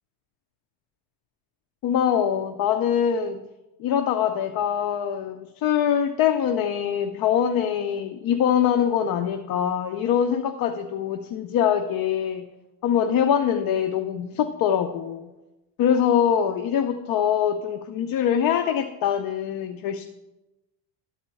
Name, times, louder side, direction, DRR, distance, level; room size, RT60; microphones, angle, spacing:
voice 1, 1.8-3.4 3.8-12.5 12.8-15.3 15.8-20.0, left 8 dB, 45° left, 6 dB, 0.6 m, -23 dB
12.0 x 4.3 x 7.0 m, 1.0 s
cardioid pair, 145°, 48 cm